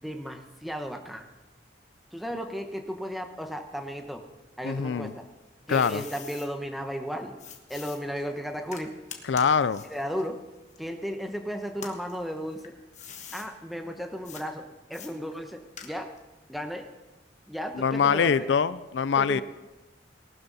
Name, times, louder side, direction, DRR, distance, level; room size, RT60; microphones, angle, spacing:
voice 1, 0.0-1.3 2.1-4.2 4.6-5.2 5.7-7.4 7.7-8.9 9.9-10.4 10.8-12.7 13.3-16.1 16.5-16.9 17.5-18.5 19.1-19.4, equal, ahead, 4 dB, 1.1 m, -35 dB
voice 2, 4.6-5.1 5.7-6.0 9.3-9.8 17.8-19.4, left 6 dB, 75° left, 16 dB, 0.4 m, -24 dB
sound 1, 5.1-6.5 7.4-11.3 11.7-13.5 14.2-14.5 14.9-16.3, left 7 dB, 40° left, 1.4 m, -45 dB
18.5 x 12.5 x 4.1 m, 1.1 s
head